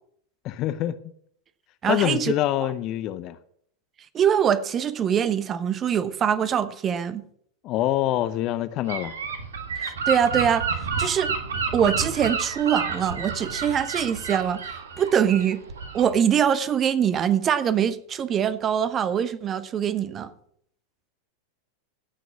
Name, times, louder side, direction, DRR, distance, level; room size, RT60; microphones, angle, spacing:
voice 1, 0.4-1.0 1.9-3.4 7.6-9.1, left 13 dB, 35° left, 0.7 m, -25 dB
voice 2, 1.8-2.3 4.1-7.2 9.8-11.3 11.7-15.6 15.9-20.3, right 8 dB, 25° right, 0.9 m, -23 dB
Gull seagull / Wind, 8.9-16.2, right 5 dB, 65° right, 1.6 m, -30 dB
16.0 x 6.2 x 6.2 m
figure-of-eight pair, 90°, 0 cm